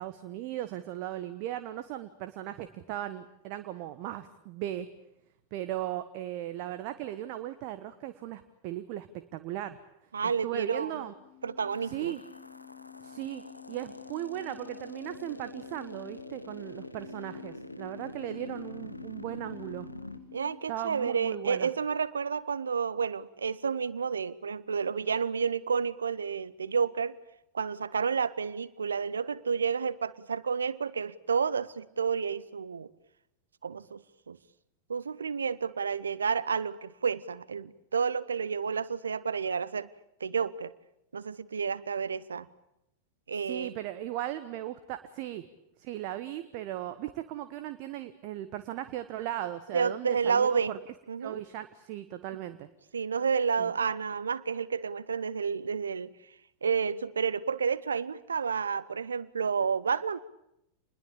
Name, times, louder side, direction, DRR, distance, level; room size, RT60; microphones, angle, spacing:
voice 1, 0.0-4.9 5.5-9.8 10.4-11.1 11.8-12.2 13.0-19.9 20.7-21.7 43.3-45.5 45.8-50.8 51.2-52.7 53.6-53.7, right 13 dB, 45° right, 11 dB, 1.2 m, -37 dB
voice 2, 10.1-11.0 11.4-12.1 20.3-27.2 27.5-32.9 33.6-34.0 34.3-34.4 34.9-39.9 40.2-40.7 41.1-42.5 43.3-43.7 49.7-50.7 51.1-51.4 52.9-56.1 56.6-60.2, right 6 dB, 70° right, 19 dB, 0.9 m, -30 dB
sound 1, 11.0-20.6, left 13 dB, 50° left, 2.4 m, -51 dB
sound 2, 11.7-20.2, left 1 dB, 85° left, 1.3 m, -45 dB
27.5 x 21.0 x 8.6 m, 0.82 s
figure-of-eight pair, 90°, 0 cm